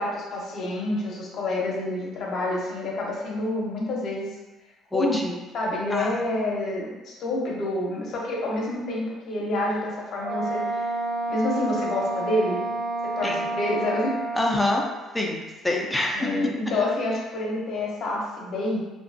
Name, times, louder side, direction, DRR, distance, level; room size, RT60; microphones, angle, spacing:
voice 1, 0.0-4.3 4.9-10.9 11.3-12.6 13.0-14.2 16.1-18.8, left 1 dB, 60° left, -3 dB, 0.6 m, -28 dB
voice 2, 4.9-5.2 5.9-6.2 13.2-13.5 14.3-14.8 15.1-16.3, left 2 dB, 10° left, 0 dB, 0.4 m, -26 dB
Wind instrument woodwind instrument, 10.2-14.7, right 2 dB, 70° right, 0.3 m, -29 dB
2.5 x 2.3 x 2.5 m, 1.1 s
cardioid pair, 115°, 0 cm